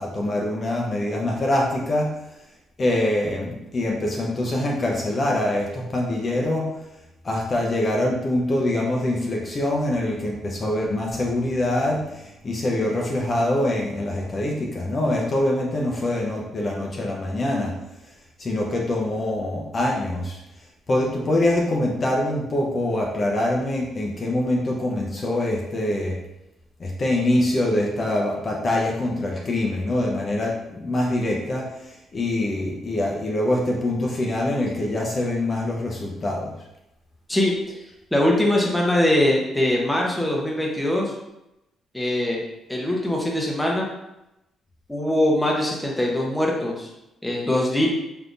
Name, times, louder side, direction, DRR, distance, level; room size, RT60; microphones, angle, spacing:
voice 1, 0.0-2.1 2.8-6.7 7.2-17.7 18.4-20.4 20.9-26.2 26.8-31.7 32.1-36.5, left 1 dB, 40° left, -1 dB, 0.6 m, -24 dB
voice 2, 38.1-41.1 41.9-42.4 42.7-43.9 44.9-46.9 47.2-47.9, left 1 dB, 5° left, -2 dB, 0.7 m, -22 dB
3.5 x 2.8 x 2.5 m, 0.88 s
cardioid pair, 90°, 0 cm